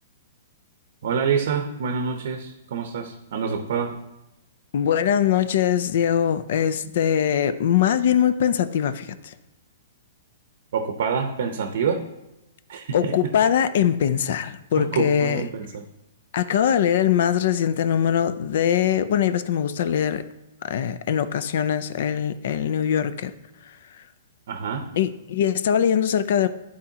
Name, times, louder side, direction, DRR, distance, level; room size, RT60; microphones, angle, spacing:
voice 1, 1.0-4.0 10.7-12.0 12.7-13.3 14.8-15.8 24.5-24.9, right 6 dB, 65° right, 0.7 m, -27 dB
voice 2, 4.7-9.3 12.9-15.4 16.3-20.2 20.6-23.3 25.0-26.5, left 9 dB, 60° left, 0.5 m, -22 dB
11.5 x 4.3 x 2.8 m
hypercardioid pair, 150°, 0 cm